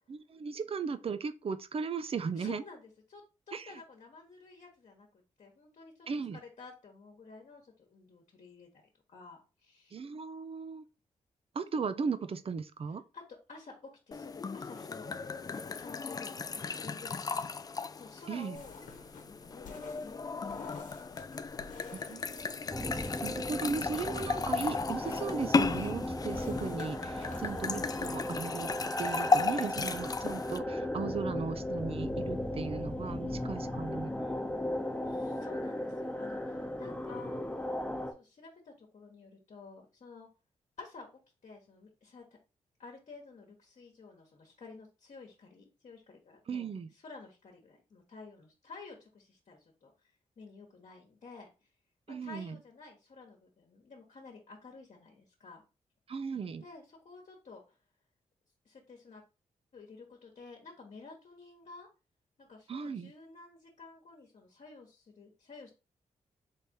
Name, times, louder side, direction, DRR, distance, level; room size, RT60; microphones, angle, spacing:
voice 1, 0.1-2.6 3.5-3.7 6.1-6.4 9.9-10.8 11.5-13.0 18.3-18.6 21.9-28.7 29.0-34.1 46.5-46.9 52.1-52.6 56.1-56.6 62.7-63.1, right 5 dB, 45° right, 0.5 m, -37 dB
voice 2, 2.4-6.1 6.3-8.8 9.1-10.0 13.1-15.1 15.5-16.5 16.8-17.5 17.9-18.8 19.3-21.0 35.0-37.4 38.1-40.3 40.8-41.1 41.4-42.3 42.8-46.7 46.9-49.9 50.4-51.7 52.1-55.6 56.6-57.8 58.6-59.2 59.7-61.9 62.4-65.7, left 4 dB, 60° left, 1.2 m, -51 dB
sound 1, 14.1-30.6, left 4 dB, 30° left, 0.3 m, -35 dB
sound 2, 18.5-28.4, left 4 dB, 85° left, 1.0 m, -53 dB
sound 3, 22.7-38.1, left 1 dB, 10° left, 0.9 m, -36 dB
3.4 x 3.4 x 4.2 m
cardioid pair, 70°, 13 cm